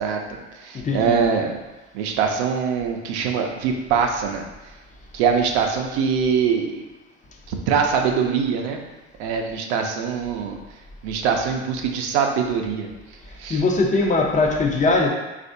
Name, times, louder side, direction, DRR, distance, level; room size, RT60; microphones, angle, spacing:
voice 1, 0.0-1.6 1.9-4.5 5.1-6.8 7.5-8.8 9.2-10.6 11.0-12.9 13.4-13.6, right 6 dB, 70° right, 3 dB, 0.6 m, -23 dB
voice 2, 0.7-1.2 13.5-15.1, left 3 dB, 20° left, 1 dB, 0.5 m, -20 dB
3.3 x 2.5 x 2.6 m, 1.1 s
hypercardioid pair, 70°, 34 cm